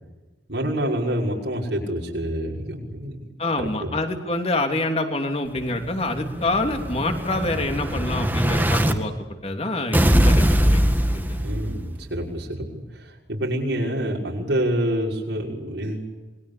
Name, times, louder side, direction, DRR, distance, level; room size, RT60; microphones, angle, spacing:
voice 1, 0.5-3.3 3.6-3.9 11.3-16.0, right 1 dB, 90° right, -2 dB, 6.2 m, -27 dB
voice 2, 3.4-9.1 9.4-10.8 11.1-11.4, left 2 dB, 35° left, 4 dB, 3.2 m, -26 dB
Explosion, 5.6-8.9 9.9-11.9, equal, 10° right, 2.0 m, -21 dB
27.5 x 21.5 x 8.6 m, 1.2 s
head